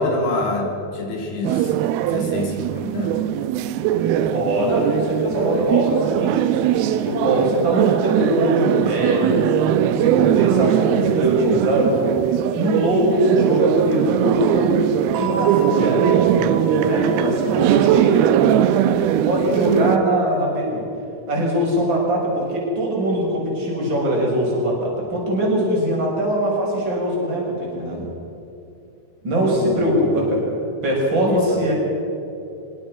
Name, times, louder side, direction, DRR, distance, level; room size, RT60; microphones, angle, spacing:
voice 1, 0.0-1.7 2.1-3.2 19.7-20.0 29.4-30.1 31.3-31.7, left 2 dB, 85° left, 1 dB, 5.7 m, -27 dB
sound 1, 1.4-20.0, right 10 dB, 80° right, 2.6 m, -20 dB
voice 2, 4.3-6.4 6.8-12.0 12.5-18.3 19.2-20.8 21.3-28.1 29.2-31.7, right 1 dB, 30° right, -3 dB, 6.8 m, -22 dB
sound 2, 15.1-19.8, right 5 dB, 65° right, 4.6 m, -33 dB
24.5 x 22.5 x 6.1 m, 2.8 s
omnidirectional pair, 4.5 m